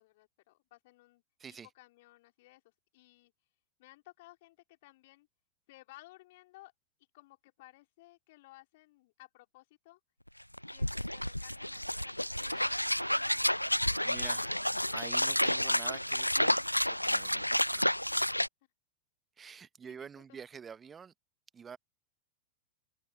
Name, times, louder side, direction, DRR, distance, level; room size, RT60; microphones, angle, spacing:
voice 1, 0.0-1.2 1.7-3.3 3.8-5.3 5.7-6.7 7.1-10.0 10.7-14.6 19.8-20.4, left 19 dB, 50° left, 4.0 m, -58 dB
sound 1, 10.3-10.4 10.5-18.5, left 1 dB, 90° left, 0.6 m, -30 dB
voice 2, 12.5-12.8 14.0-14.5 14.9-16.5 16.9-17.9 19.4-21.1 21.5-21.8, right 6 dB, 20° right, 1.1 m, -48 dB
figure-of-eight pair, 90°, 0 cm